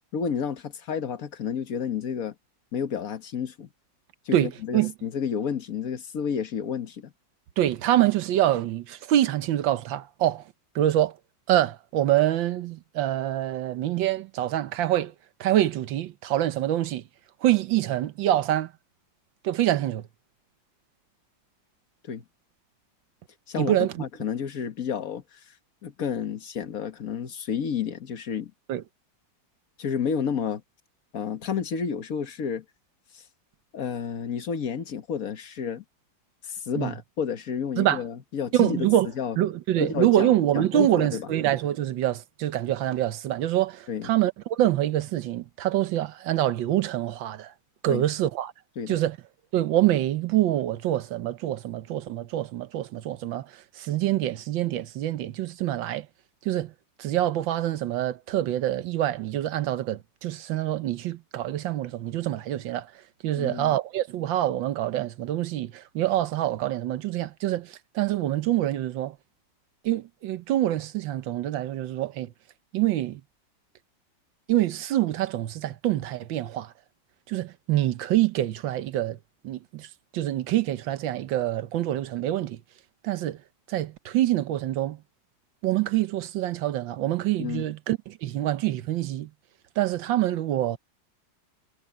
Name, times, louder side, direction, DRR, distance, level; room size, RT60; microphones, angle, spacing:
voice 1, 0.1-2.3 2.7-3.7 4.2-7.1 22.0-22.2 23.5-25.4 25.8-28.5 29.8-30.6 31.1-32.6 33.1-33.2 33.7-35.8 36.4-38.8 39.2-39.4 39.8-41.3 43.9-44.1 47.9-48.0 48.8-49.0 63.3-63.7 87.4-87.7, left 7 dB, 50° left, 1.7 m, -31 dB
voice 2, 4.3-4.9 7.6-10.4 10.7-11.2 11.5-15.1 15.4-17.0 17.4-18.7 19.4-20.0 23.6-23.9 28.7-28.8 36.8-36.9 37.8-38.0 38.5-39.1 39.4-47.5 47.8-48.5 48.9-49.2 49.5-56.1 56.4-56.7 57.0-62.9 63.2-69.2 69.8-72.3 72.7-73.2 74.5-76.7 77.3-79.2 79.4-79.9 80.1-82.6 83.0-83.4 83.7-85.0 85.6-89.3 89.8-90.8, right 13 dB, 85° right, 1.6 m, -25 dB
omnidirectional pair, 2.0 m